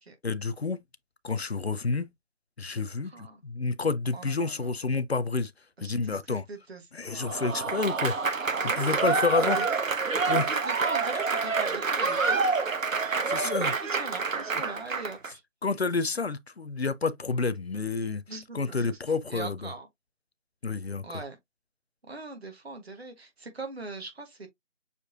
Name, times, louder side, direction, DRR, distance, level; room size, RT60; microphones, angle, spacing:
voice 1, 0.2-0.8 1.2-2.1 2.6-5.5 5.8-6.4 6.9-8.2 8.8-9.6 10.3-10.4 13.3-13.7 15.6-18.2 18.5-19.7 20.6-21.1, left 4 dB, 55° left, 0.5 m, -29 dB
voice 2, 3.0-3.4 4.1-4.7 5.8-6.8 8.6-9.8 10.1-12.7 13.4-15.4 18.3-19.0 19.3-19.9 21.0-21.4 22.1-24.5, right 3 dB, 55° right, 1.4 m, -41 dB
Applause / Crowd, 7.1-15.3, right 4 dB, 85° right, 0.9 m, -27 dB
6.7 x 2.7 x 2.6 m
figure-of-eight pair, 165°, 38 cm